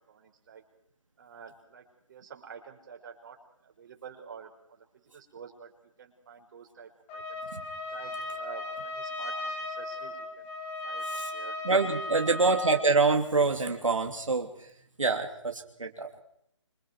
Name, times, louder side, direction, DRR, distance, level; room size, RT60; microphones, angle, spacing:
voice 1, 0.1-0.6 1.2-3.4 3.6-5.7 6.0-7.4 7.9-10.5 10.8-11.6 12.1-12.4, right 6 dB, 40° right, 2 dB, 5.5 m, -49 dB
Trumpet, 7.1-13.0, left 2 dB, 15° left, 3.7 m, -36 dB
voice 2, 11.6-14.7 15.0-16.1, right 3 dB, 90° right, 3 dB, 3.1 m, -26 dB
26.5 x 26.0 x 4.8 m, 0.72 s
figure-of-eight pair, 160°, 16 cm